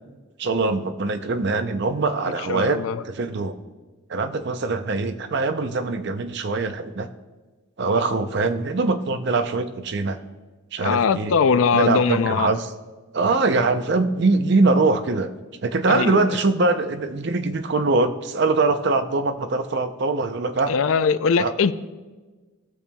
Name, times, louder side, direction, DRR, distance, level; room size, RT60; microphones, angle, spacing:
voice 1, 0.4-2.8 3.0-3.5 4.1-7.1 7.8-10.2 10.7-11.3 11.7-12.7 13.1-15.3 15.6-20.7 21.4-21.5, right 3 dB, 50° right, 9 dB, 0.5 m, -22 dB
voice 2, 2.5-3.0 10.8-12.5 15.9-16.4 20.7-21.7, left 5 dB, 70° left, 13 dB, 0.4 m, -21 dB
18.0 x 6.9 x 2.3 m, 1.3 s
head